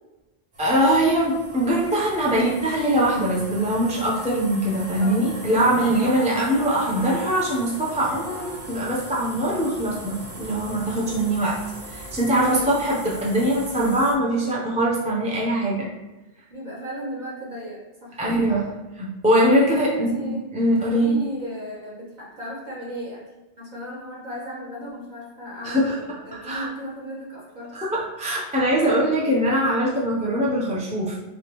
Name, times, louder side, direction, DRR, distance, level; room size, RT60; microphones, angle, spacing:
sound 1, 0.5-14.1, equal, 70° right, 1.4 m, -39 dB
voice 1, 0.6-11.6 11.9-15.9 18.2-18.6 19.0-21.2 25.6-26.0 26.4-26.7 27.7-31.2, right 1 dB, 10° right, -5 dB, 0.6 m, -22 dB
voice 2, 12.4-13.0 16.5-18.2 18.5-18.7 19.7-20.5 20.9-23.2 23.6-27.7, equal, 40° right, -6 dB, 1.3 m, -35 dB
3.9 x 3.5 x 3.0 m, 1.1 s
omnidirectional pair, 1.2 m